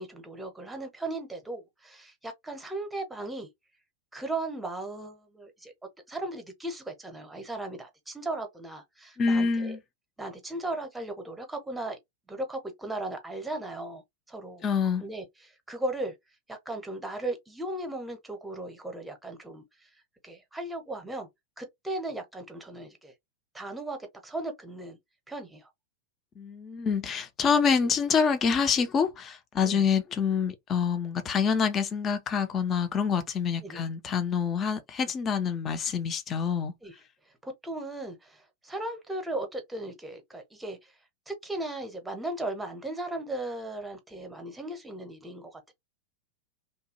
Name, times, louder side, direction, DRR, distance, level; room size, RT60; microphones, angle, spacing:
voice 1, 0.0-3.5 4.1-5.7 6.1-9.8 10.2-12.0 12.3-14.0 14.3-14.7 15.0-16.1 16.5-19.6 20.2-21.3 21.6-23.1 23.5-25.0 25.3-25.7 29.6-29.9 33.6-33.8 36.8-36.9 37.4-40.8 41.3-45.7, right 2 dB, 5° right, 0.8 m, -37 dB
voice 2, 9.2-9.8 14.6-15.0 26.4-36.7, left 6 dB, 25° left, 0.6 m, -26 dB
2.9 x 2.2 x 2.9 m
figure-of-eight pair, 90°, 0 cm